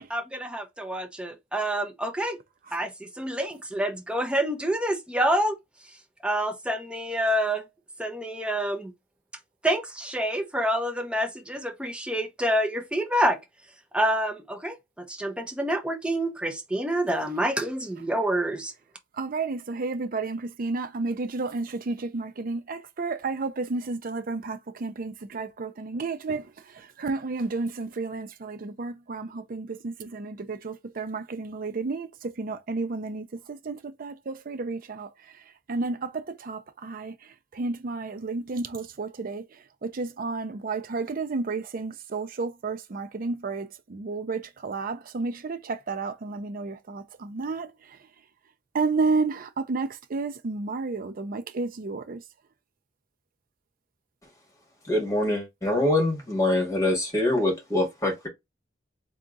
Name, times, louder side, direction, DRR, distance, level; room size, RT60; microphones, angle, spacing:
voice 1, 0.1-2.4 2.7-5.6 6.2-7.6 8.0-8.9 9.6-13.4 13.9-18.7, right 1 dB, 5° right, 0.8 m, -27 dB
voice 2, 19.2-26.5 27.0-35.1 35.7-37.1 37.5-39.4 39.8-47.7 48.7-52.2, right 3 dB, 50° right, 0.5 m, -31 dB
voice 3, 54.9-58.3, left 1 dB, 20° left, 1.9 m, -24 dB
3.6 x 2.8 x 3.8 m
head